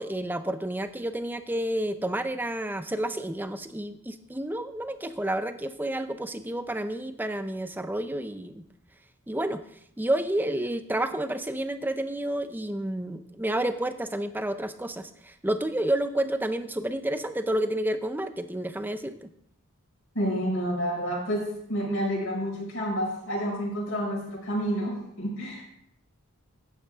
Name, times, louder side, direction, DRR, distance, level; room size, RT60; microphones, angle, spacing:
voice 1, 0.0-8.6 9.3-9.6 10.0-19.3, right 1 dB, 10° right, 10 dB, 0.5 m, -30 dB
voice 2, 20.1-25.6, equal, 60° left, -2 dB, 5.1 m, -29 dB
12.5 x 9.3 x 3.6 m, 0.71 s
head